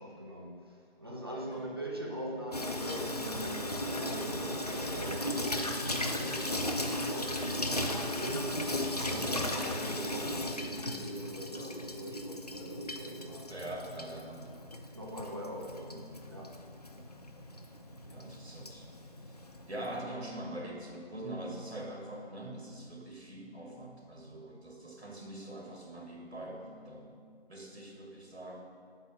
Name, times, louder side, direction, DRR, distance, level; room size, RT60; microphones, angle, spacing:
voice 1, 0.0-8.6 9.0-13.5 14.9-16.6, right 1 dB, 25° right, -2 dB, 0.6 m, -42 dB
voice 2, 1.4-1.7 6.2-6.5 11.5-11.8 13.5-14.5 16.9-17.1 18.1-18.9 19.3-19.4 19.7-27.2 27.5-28.6, right 1 dB, 80° right, 0 dB, 1.8 m, -43 dB
Water tap faucet / Sink (filling or washing), 2.5-20.0, left 1 dB, 40° left, 0.4 m, -36 dB
8.2 x 3.9 x 5.9 m, 2.1 s
figure-of-eight pair, 155°, 32 cm